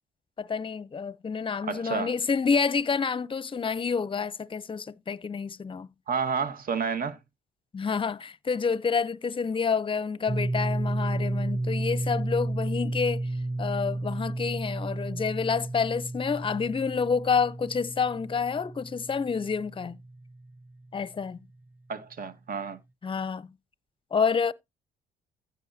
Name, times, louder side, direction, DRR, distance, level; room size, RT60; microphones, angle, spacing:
voice 1, 0.4-5.9 7.7-13.2 13.6-20.0 20.9-21.4 23.0-23.5 24.1-24.5, left 5 dB, 30° left, 0.6 m, -28 dB
voice 2, 1.7-2.1 6.1-7.2 21.9-22.8, right 6 dB, 55° right, 1.6 m, -30 dB
sound 1, 10.3-20.9, right 2 dB, 10° right, 0.6 m, -32 dB
15.5 x 5.5 x 2.7 m
supercardioid pair, 55°, 18 cm